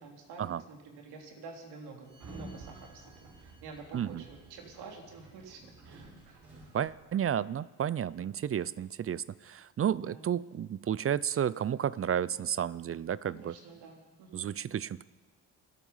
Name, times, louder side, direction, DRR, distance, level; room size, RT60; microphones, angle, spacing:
voice 1, 0.0-3.0 3.4-6.6 9.9-10.2 13.4-14.5, right 4 dB, 75° right, 1 dB, 3.5 m, -49 dB
Sliding door, 2.1-7.3, right 2 dB, 55° right, 7.6 m, -51 dB
voice 2, 3.9-4.2 6.7-13.5 14.3-15.0, right 9 dB, 35° right, 21 dB, 0.5 m, -32 dB
27.5 x 9.2 x 5.6 m, 1.2 s
hypercardioid pair, 60°, 39 cm